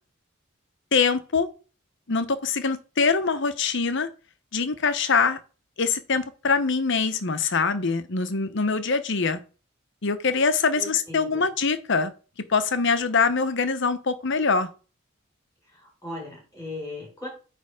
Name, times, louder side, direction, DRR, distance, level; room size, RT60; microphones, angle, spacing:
voice 1, 0.9-1.5 2.1-4.1 4.5-5.4 5.8-9.4 10.0-12.1 12.5-14.7, left 4 dB, 65° left, 0.9 m, -23 dB
voice 2, 10.7-11.5 15.7-17.3, left 2 dB, 15° left, 4.4 m, -38 dB
8.9 x 3.4 x 4.9 m
head